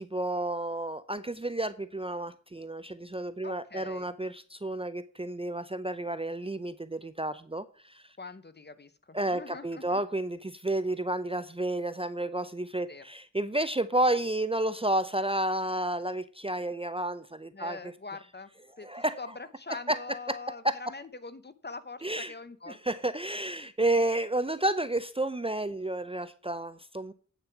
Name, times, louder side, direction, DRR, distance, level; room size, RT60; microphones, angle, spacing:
voice 1, 0.0-8.0 9.1-17.8 18.8-19.2 19.9-20.0 20.3-20.4 20.6-20.7 22.0-22.3 22.7-27.1, right 1 dB, 20° right, 13 dB, 0.5 m, -31 dB
voice 2, 3.4-4.1 8.2-10.0 12.9-13.0 17.5-18.5 18.8-22.8, left 3 dB, 35° left, 13 dB, 0.8 m, -43 dB
8.8 x 6.7 x 5.8 m, 0.44 s
wide cardioid pair, 80°, 31 cm